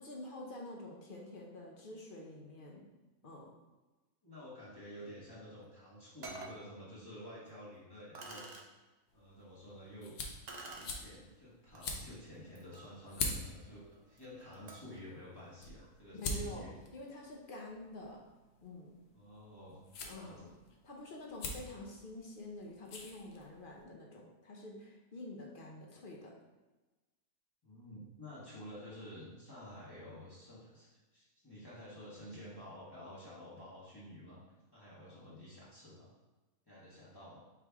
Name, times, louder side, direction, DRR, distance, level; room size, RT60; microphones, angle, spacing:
voice 1, 0.0-2.8 3.2-3.5 16.2-16.7 16.9-18.2 18.6-18.9 20.0-20.5 20.8-26.3, left 1 dB, 45° left, -2 dB, 0.7 m, -47 dB
voice 2, 4.2-8.5 9.1-10.1 10.7-16.7 19.1-20.6 27.6-34.4 34.7-36.1 36.7-37.4, left 1 dB, 15° left, -9 dB, 1.2 m, -51 dB
sound 1, 5.6-5.7 6.2-6.6 7.4-7.5 8.1-8.7 10.5-11.0 11.7-11.9 12.4-15.0, right 3 dB, 65° right, 0.4 m, -50 dB
sound 2, 9.1-23.8, left 3 dB, 90° left, 1.2 m, -46 dB
4.9 x 3.1 x 3.5 m, 1.2 s
omnidirectional pair, 1.6 m